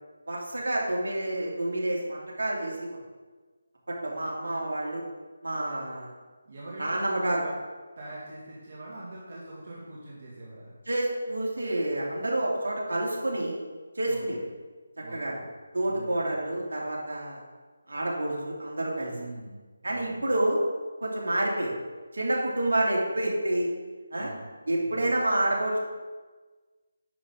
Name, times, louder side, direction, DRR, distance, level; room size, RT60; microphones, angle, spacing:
voice 1, 0.3-2.9 3.9-5.0 5.4-6.1 6.8-7.4 10.9-13.6 14.0-14.4 15.1-15.4 15.7-17.4 17.9-19.1 19.8-20.6 21.0-21.7 22.1-23.7 24.1-24.3 24.7-25.8, right 1 dB, 75° right, -3 dB, 2.6 m, -28 dB
voice 2, 6.5-7.5 8.0-10.7 14.0-14.4 15.0-15.5 15.9-16.3 19.1-20.2 24.1-24.6 24.8-25.2, right 2 dB, 50° right, -6 dB, 2.3 m, -43 dB
10.0 x 6.4 x 3.9 m, 1.3 s
figure-of-eight pair, 165°, 0 cm